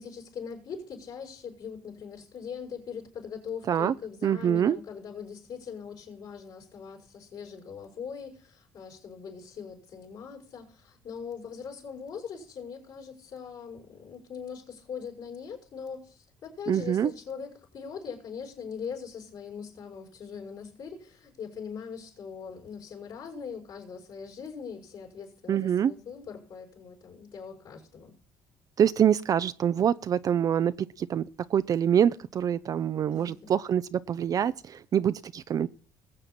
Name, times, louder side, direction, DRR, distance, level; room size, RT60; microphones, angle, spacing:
voice 1, 0.0-28.1 33.1-33.5, left 6 dB, 65° left, 5.5 m, -41 dB
voice 2, 4.2-4.8 16.7-17.1 25.5-25.9 28.8-35.7, right 9 dB, 45° right, 0.5 m, -25 dB
20.5 x 7.7 x 4.3 m
supercardioid pair, 85°, 8 cm